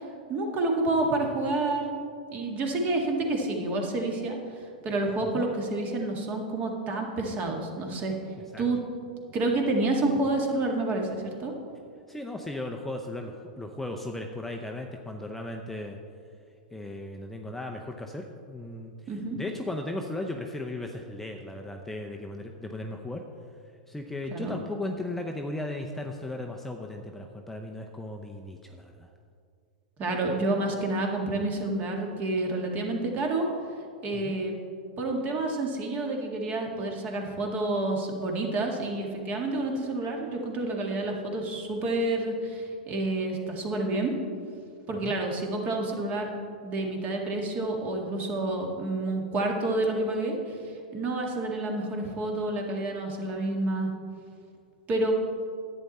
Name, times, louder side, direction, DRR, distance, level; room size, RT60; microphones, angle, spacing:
voice 1, 0.3-2.0 2.3-4.4 4.8-8.1 8.6-8.8 9.3-11.5 19.1-19.4 24.3-24.6 30.0-33.5 34.0-34.5 35.0-44.1 44.9-46.3 46.6-53.9 54.9-55.1, right 2 dB, 35° right, 1 dB, 1.8 m, -29 dB
voice 2, 12.1-16.0 16.7-23.2 23.9-29.1 34.1-34.4 44.9-45.1, left 2 dB, 5° left, 2 dB, 0.6 m, -36 dB
10.5 x 8.7 x 4.2 m, 2.3 s
hypercardioid pair, 120°, 5 cm